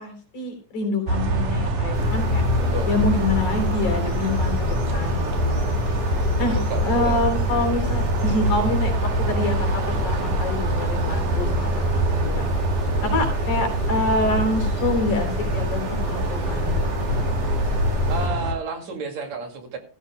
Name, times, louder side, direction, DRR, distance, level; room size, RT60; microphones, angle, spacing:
voice 1, 0.0-5.7 6.1-12.4 13.0-16.7, left 2 dB, 70° left, 3 dB, 4.8 m, -27 dB
sound 1, 1.1-18.5, right 1 dB, 85° right, 3.9 m, -24 dB
sound 2, 1.9-18.3, left 1 dB, 35° left, 2.8 m, -30 dB
voice 2, 2.6-2.9 6.3-7.2 13.0-13.3 18.1-19.8, right 4 dB, 60° right, 4 dB, 3.5 m, -31 dB
16.0 x 14.0 x 2.2 m, 0.38 s
omnidirectional pair, 3.6 m